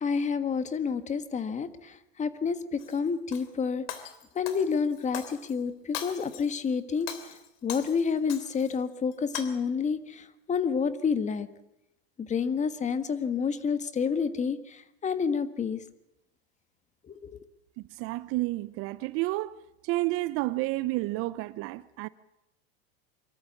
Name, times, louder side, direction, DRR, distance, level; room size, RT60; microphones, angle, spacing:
voice 1, 0.0-3.9 4.3-7.1 7.6-11.5 12.2-15.8 17.1-17.4, left 6 dB, 20° left, 1.5 m, -29 dB
Shatter, 2.8-3.5 3.9-5.5 5.9-6.6 7.0-8.8 9.1-9.4, left 10 dB, 65° left, 3.1 m, -40 dB
voice 2, 17.8-19.5 19.8-22.1, right 19 dB, 45° right, 0.7 m, -30 dB
24.5 x 13.5 x 8.6 m
hypercardioid pair, 110°, 31 cm